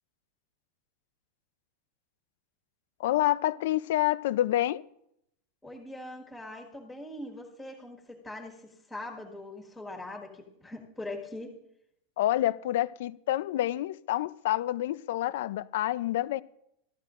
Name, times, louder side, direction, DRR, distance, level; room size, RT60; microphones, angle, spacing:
voice 1, 3.0-4.8 12.2-16.4, left 14 dB, 65° left, 0.4 m, -28 dB
voice 2, 5.6-11.6, left 1 dB, 5° left, 1.7 m, -42 dB
16.0 x 13.0 x 2.5 m
supercardioid pair, 170°, 0 cm